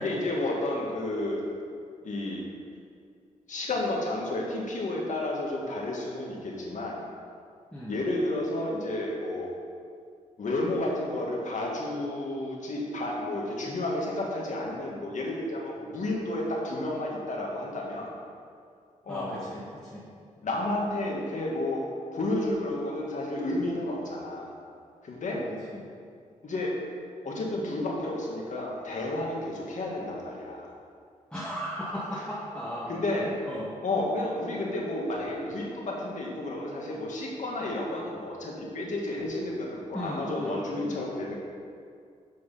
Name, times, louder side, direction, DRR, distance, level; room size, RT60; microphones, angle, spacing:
voice 1, 0.0-1.4 2.0-2.4 3.5-7.0 7.9-9.5 10.4-18.1 19.0-19.4 20.4-21.9 22.1-24.5 25.0-25.4 26.4-26.8 27.2-30.7 32.1-32.2 32.9-33.3 33.8-41.4, left 1 dB, 60° left, -2 dB, 2.0 m, -31 dB
voice 2, 7.7-8.0 19.1-20.1 25.3-25.9 31.3-33.7 39.9-41.0, equal, 5° left, -7 dB, 1.4 m, -37 dB
8.0 x 6.4 x 5.8 m, 2.2 s
cardioid pair, 85°, 14 cm